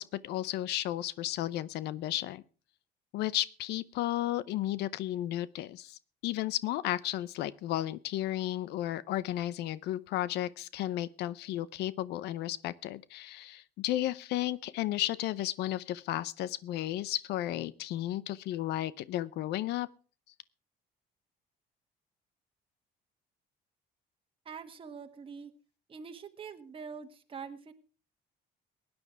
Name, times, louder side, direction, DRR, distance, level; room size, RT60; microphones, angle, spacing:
voice 1, 0.0-2.4 3.1-19.9, left 14 dB, 80° left, 19 dB, 0.6 m, -33 dB
voice 2, 24.4-25.5 25.9-27.7, right 6 dB, 30° right, 5 dB, 1.5 m, -44 dB
16.5 x 9.7 x 4.7 m, 0.36 s
cardioid pair, 110°, 17 cm